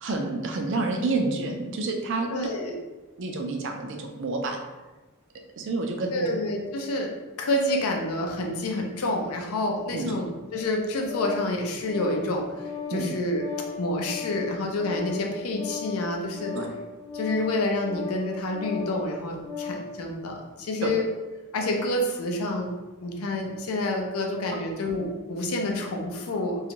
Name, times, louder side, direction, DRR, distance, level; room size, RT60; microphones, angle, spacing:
voice 1, 0.0-2.3 3.2-4.6 5.6-6.1 9.9-10.1 12.9-13.1 16.5-16.7 20.8-20.9, right 3 dB, 60° right, 3 dB, 0.4 m, -28 dB
voice 2, 2.3-2.7 6.1-7.1 7.4-12.5 12.9-13.4 13.8-16.6 17.1-21.0 21.5-22.7 23.0-26.7, left 1 dB, 85° left, 1 dB, 0.5 m, -28 dB
Organ, 10.5-19.9, left 6 dB, 15° left, 0.4 m, -37 dB
2.5 x 2.3 x 2.9 m, 1.2 s
head